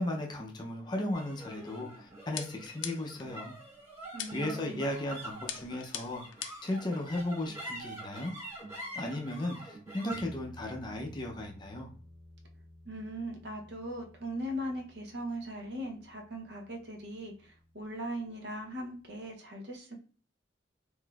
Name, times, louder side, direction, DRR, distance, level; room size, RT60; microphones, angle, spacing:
voice 1, 0.0-3.5 4.3-6.2 6.6-8.3 9.0-11.9, left 1 dB, 25° left, 1 dB, 0.4 m, -35 dB
sound 1, 1.1-17.7, right 1 dB, 20° right, 1.4 m, -47 dB
sound 2, 2.4-3.3 4.2-4.6 5.5-6.7, left 9 dB, 80° left, 0.4 m, -41 dB
voice 2, 4.1-4.8 12.9-19.9, equal, 60° right, 2 dB, 0.6 m, -39 dB
3.8 x 2.5 x 2.3 m, 0.39 s
head